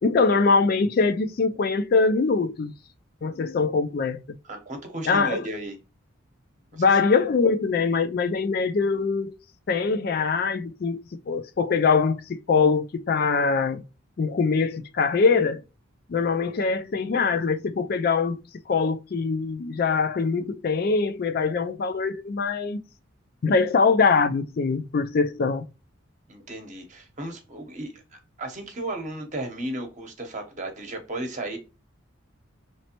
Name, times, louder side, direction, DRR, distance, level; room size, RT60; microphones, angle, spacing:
voice 1, 0.0-2.7 3.2-4.2 5.1-5.4 6.8-9.3 9.7-13.8 14.2-15.6 16.1-18.4 18.7-22.8 23.4-25.6, left 4 dB, 45° left, 0.3 m, -23 dB
voice 2, 4.5-5.8 6.7-6.8 26.3-31.6, right 1 dB, 35° right, 0.9 m, -34 dB
5.0 x 3.2 x 2.9 m
head